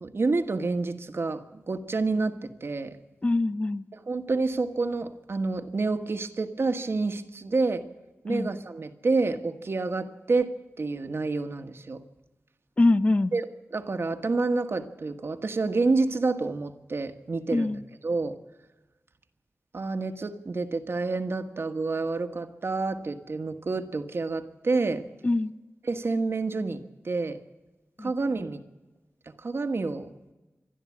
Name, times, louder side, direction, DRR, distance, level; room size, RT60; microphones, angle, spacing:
voice 1, 0.0-2.9 3.9-7.9 8.2-12.0 13.3-18.3 19.7-25.0 25.8-27.4 28.0-28.6 29.4-30.1, right 3 dB, 55° right, 8 dB, 1.4 m, -28 dB
voice 2, 3.2-3.8 8.3-8.5 12.8-13.3 17.5-17.8 25.2-25.5 28.0-28.1, left 2 dB, 25° left, 15 dB, 0.7 m, -23 dB
26.5 x 12.0 x 8.5 m, 1.1 s
wide cardioid pair, 115°, 5 cm